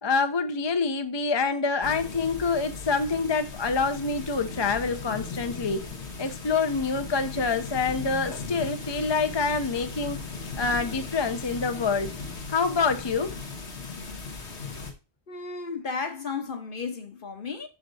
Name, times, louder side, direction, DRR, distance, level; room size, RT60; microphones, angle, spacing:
voice 1, 0.0-5.9 6.2-10.2 10.6-12.1 12.5-13.3, left 4 dB, 30° left, 0.6 m, -26 dB
sound 1, 1.8-14.9, left 4 dB, 80° left, 1.7 m, -38 dB
voice 2, 15.3-17.7, left 5 dB, 55° left, 1.3 m, -34 dB
6.5 x 5.7 x 4.0 m
omnidirectional pair, 1.1 m